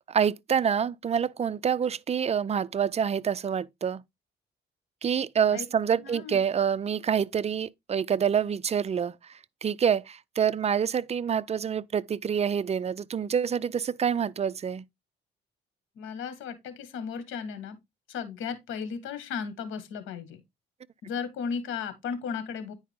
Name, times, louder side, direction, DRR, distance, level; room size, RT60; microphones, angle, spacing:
voice 1, 0.0-4.0 5.0-9.3 9.6-14.8, right 7 dB, 30° right, 0.5 m, -27 dB
voice 2, 6.0-6.4 16.0-17.8 18.1-20.4 21.0-22.7, left 6 dB, 85° left, 1.7 m, -35 dB
9.8 x 4.8 x 3.6 m
cardioid pair, 90°, 20 cm